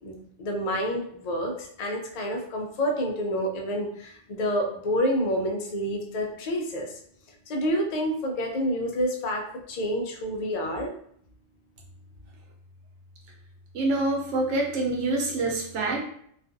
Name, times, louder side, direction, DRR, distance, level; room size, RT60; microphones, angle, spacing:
voice 1, 0.0-6.9 7.5-10.9, equal, 85° left, 1 dB, 0.3 m, -28 dB
voice 2, 13.7-16.0, right 2 dB, 75° right, 0 dB, 0.9 m, -26 dB
2.4 x 2.3 x 2.5 m, 0.66 s
omnidirectional pair, 1.3 m